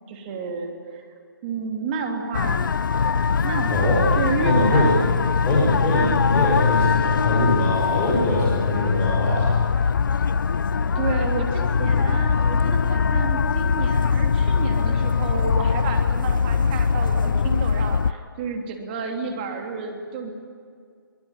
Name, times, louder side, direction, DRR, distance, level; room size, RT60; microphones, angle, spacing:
voice 1, 0.1-1.0 1.4-2.7 3.4-5.4 10.9-20.3, right 4 dB, 25° right, 2 dB, 3.2 m, -30 dB
sound 1, 2.3-18.1, left 5 dB, 65° left, 0.7 m, -22 dB
voice 2, 4.4-4.9 5.5-9.5, left 1 dB, 15° left, -5 dB, 5.7 m, -22 dB
24.0 x 21.0 x 9.9 m, 2.2 s
hypercardioid pair, 160°, 12 cm